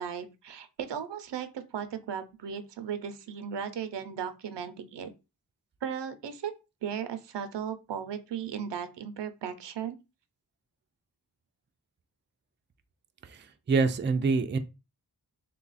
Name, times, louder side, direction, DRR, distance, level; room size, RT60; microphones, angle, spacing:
voice 1, 0.0-5.1 5.8-6.5 6.8-10.0, right 8 dB, 85° right, 0.6 m, -36 dB
voice 2, 13.3-14.6, right 4 dB, 30° right, 0.4 m, -26 dB
3.3 x 2.4 x 4.0 m
wide cardioid pair, 90°, 41 cm